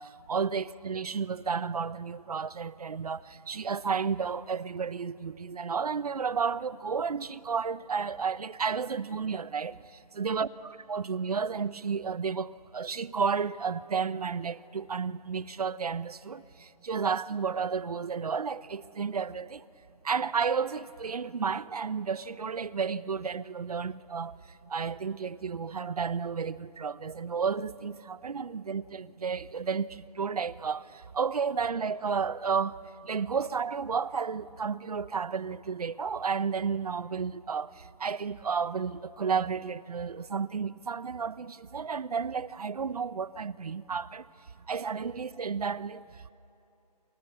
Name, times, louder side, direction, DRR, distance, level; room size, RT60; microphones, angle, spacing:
voice 1, 0.0-19.6 20.0-44.2 44.7-46.3, right 6 dB, 65° right, 0.8 m, -32 dB
28.0 x 27.0 x 6.9 m
hypercardioid pair, 170°, 21 cm